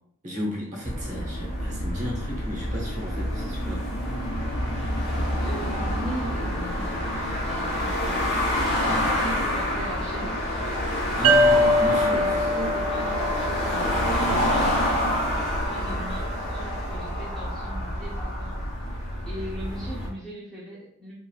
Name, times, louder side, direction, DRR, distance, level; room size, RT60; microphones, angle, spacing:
voice 1, 0.2-3.8 11.1-12.2, equal, 35° right, -3 dB, 0.8 m, -34 dB
sound 1, 0.9-20.1, equal, 50° left, 0.8 m, -27 dB
voice 2, 5.3-8.4 9.2-10.4 11.7-15.0 15.6-18.6 18.9-19.0 19.3-21.1, right 1 dB, ahead, -8 dB, 0.4 m, -39 dB
sound 2, 11.2-14.7, equal, 80° right, 0.3 m, -23 dB
3.0 x 2.5 x 2.3 m, 0.72 s
head